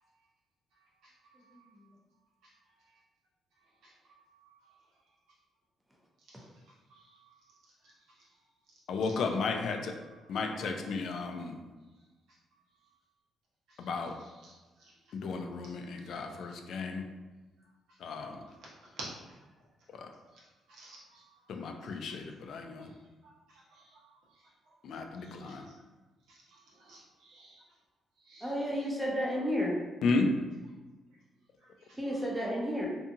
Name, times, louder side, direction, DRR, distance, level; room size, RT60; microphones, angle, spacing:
voice 1, 1.0-1.8 2.4-2.5 3.8-4.6 6.3-6.5 6.9-7.4 7.8-8.2 10.1-10.2 13.7-13.9 14.2-14.9 15.6-16.5 18.1-18.6 18.8-19.4 20.7-21.4 22.1-22.2 23.5-24.2 24.6-24.7 25.2-25.7 26.3-27.6 28.2-28.8 31.8-32.0, right 2 dB, 80° right, -5 dB, 0.9 m, -53 dB
voice 2, 8.9-9.9 10.3-11.6 13.8-14.1 15.1-17.1 18.0-18.4 19.9-20.1 21.5-22.9 24.8-25.7 30.0-30.3, left 4 dB, 70° left, 4 dB, 0.3 m, -33 dB
voice 3, 28.4-29.7 32.0-32.9, equal, 10° right, -3 dB, 0.7 m, -31 dB
2.7 x 2.4 x 2.6 m, 1.2 s
cardioid pair, 90°, 0 cm